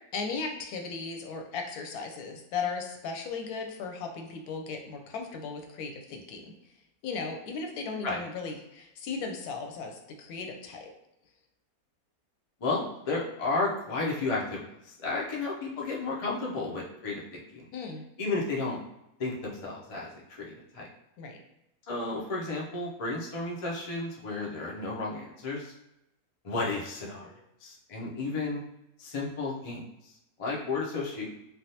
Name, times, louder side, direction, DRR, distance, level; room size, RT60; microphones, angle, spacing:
voice 1, 0.1-6.5 7.0-10.9 17.7-18.0 21.2-21.4, left 4 dB, 85° left, 3 dB, 1.1 m, -36 dB
voice 2, 12.6-17.7 18.2-18.8 19.2-20.9 21.9-25.7 26.4-28.6 29.0-30.1 30.4-31.3, left 3 dB, 50° left, -3 dB, 0.4 m, -33 dB
3.4 x 2.4 x 2.7 m, 0.87 s
omnidirectional pair, 1.6 m